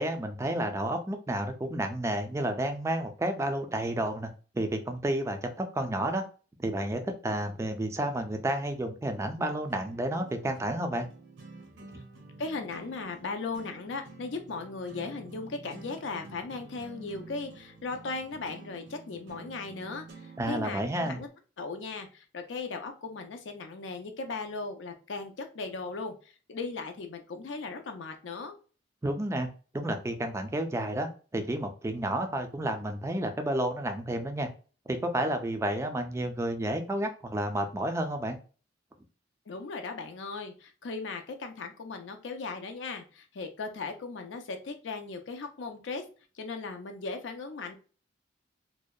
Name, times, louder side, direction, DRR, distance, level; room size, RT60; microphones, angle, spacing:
voice 1, 0.0-4.3 4.5-6.2 6.6-11.1 20.4-21.2 29.0-29.5 29.7-34.5 34.9-38.4, right 1 dB, 15° right, 6 dB, 0.3 m, -31 dB
sound 1, 9.1-21.3, right 3 dB, 65° right, 0.6 m, -50 dB
voice 2, 12.4-20.1 20.5-21.3 21.6-26.1 26.5-28.6 39.5-46.0 46.4-47.8, left 4 dB, 70° left, 6 dB, 0.5 m, -37 dB
2.7 x 2.1 x 2.3 m, 0.37 s
head